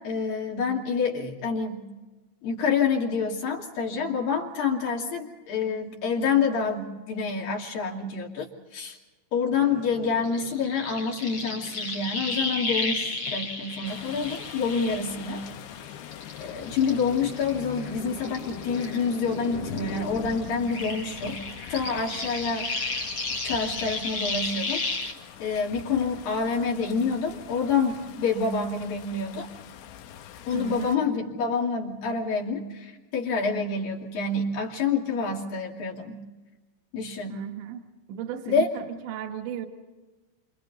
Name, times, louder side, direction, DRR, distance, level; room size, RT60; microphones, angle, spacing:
voice 1, 0.0-1.8 2.4-8.5 8.7-9.0 9.3-15.4 16.4-21.4 21.7-22.7 23.4-25.0 25.4-29.5 30.5-36.2 36.9-37.4 38.5-38.7, left 5 dB, 55° left, 0 dB, 4.0 m, -27 dB
sound 1, 9.5-20.3, left 11 dB, 70° left, 2.9 m, -43 dB
sound 2, 10.2-15.8 16.1-19.5 19.7-25.1, left 3 dB, 40° left, 2.1 m, -33 dB
sound 3, 13.9-31.0, left 9 dB, 90° left, 3.7 m, -44 dB
voice 2, 30.5-31.0 37.3-39.7, right 9 dB, 75° right, 3 dB, 3.6 m, -35 dB
30.0 x 27.0 x 4.1 m, 1.2 s
omnidirectional pair, 5.3 m